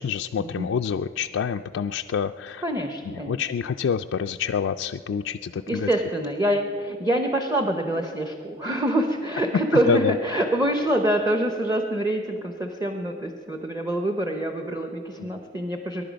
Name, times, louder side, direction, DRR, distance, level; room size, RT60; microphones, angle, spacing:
voice 1, 0.0-2.6 3.1-5.9 9.9-10.1 15.2-15.3, left 7 dB, 85° left, 6 dB, 0.3 m, -27 dB
voice 2, 2.6-3.4 5.7-16.0, right 1 dB, 15° right, 5 dB, 0.7 m, -25 dB
22.5 x 11.0 x 5.1 m, 2.3 s
head